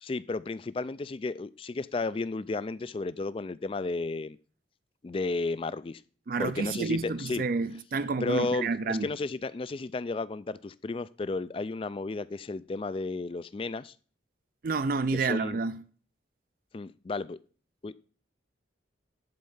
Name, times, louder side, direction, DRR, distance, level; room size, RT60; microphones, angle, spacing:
voice 1, 0.0-4.4 5.0-6.0 6.4-7.4 8.2-13.9 15.2-15.6 16.7-17.4 17.8-17.9, left 3 dB, 30° left, 0.3 m, -33 dB
voice 2, 6.3-9.1 14.6-15.8, right 4 dB, 45° right, 0.4 m, -29 dB
10.5 x 4.4 x 5.5 m
head